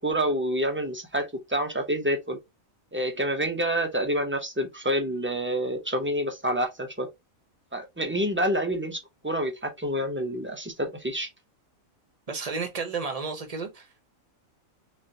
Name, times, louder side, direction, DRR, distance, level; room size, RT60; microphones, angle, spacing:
voice 1, 0.0-2.4 2.9-7.1 7.7-11.3, equal, 15° right, 0.4 m, -28 dB
voice 2, 12.3-13.9, right 4 dB, 35° right, 0.8 m, -32 dB
3.8 x 3.1 x 2.7 m
omnidirectional pair, 1.4 m